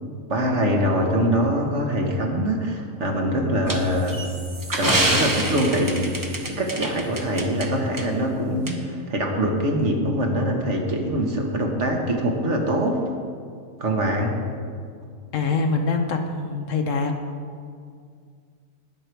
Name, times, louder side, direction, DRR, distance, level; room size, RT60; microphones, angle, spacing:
voice 1, 0.3-4.2 4.7-13.0 13.8-14.4, equal, 55° right, 1 dB, 1.6 m, -23 dB
sound 1, 3.7-7.7 8.0-8.1 8.7-8.8, right 1 dB, 15° right, 0.8 m, -26 dB
voice 2, 15.3-17.1, left 4 dB, 60° left, 4 dB, 1.2 m, -24 dB
19.5 x 6.6 x 4.6 m, 2.2 s
omnidirectional pair, 1.5 m